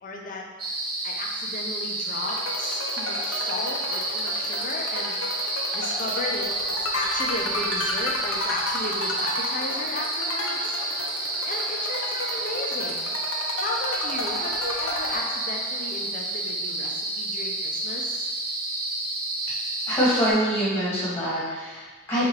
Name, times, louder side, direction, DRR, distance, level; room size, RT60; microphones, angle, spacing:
voice 1, 0.0-0.4 1.0-5.2 5.7-10.8 11.4-13.1 13.6-18.3, left 2 dB, 40° left, 0 dB, 0.5 m, -35 dB
sound 1, 0.6-20.3, right 2 dB, 45° right, 0.6 m, -30 dB
sound 2, 2.2-15.8, left 2 dB, 85° left, 0.6 m, -33 dB
voice 2, 19.9-22.3, equal, 10° left, -9 dB, 1.4 m, -24 dB
4.7 x 2.5 x 2.9 m, 1.4 s
head